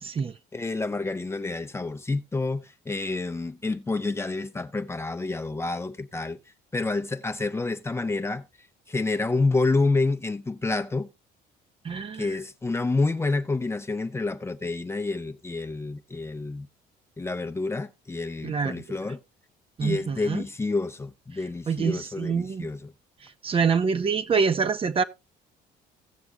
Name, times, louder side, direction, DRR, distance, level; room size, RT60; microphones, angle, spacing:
voice 1, 0.0-0.3 11.8-12.3 18.4-18.8 19.8-20.4 21.7-22.7 23.4-25.0, right 5 dB, 35° right, 0.7 m, -25 dB
voice 2, 0.5-6.4 6.7-8.4 8.9-11.1 12.1-16.7 17.2-19.2 19.8-22.9, left 3 dB, 15° left, 0.6 m, -28 dB
17.0 x 6.9 x 2.3 m
cardioid pair, 110°, 17 cm